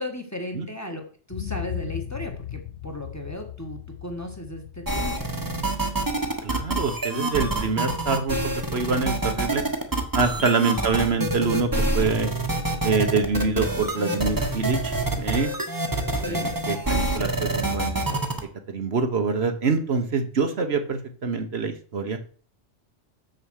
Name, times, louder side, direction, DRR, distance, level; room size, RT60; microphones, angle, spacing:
voice 1, 0.0-5.2 10.4-10.5 16.2-16.5, left 1 dB, 15° left, 3 dB, 1.6 m, -36 dB
sound 1, 1.3-9.2 9.6-9.7, left 11 dB, 90° left, 1.2 m, -39 dB
sound 2, 4.9-18.4, right 2 dB, 20° right, 1.2 m, -26 dB
voice 2, 6.4-8.4 8.7-9.6 10.1-12.3 12.8-15.5 16.2-18.2 18.7-22.2, right 4 dB, 65° right, 7 dB, 1.3 m, -25 dB
7.1 x 6.6 x 6.4 m, 0.43 s
omnidirectional pair, 1.2 m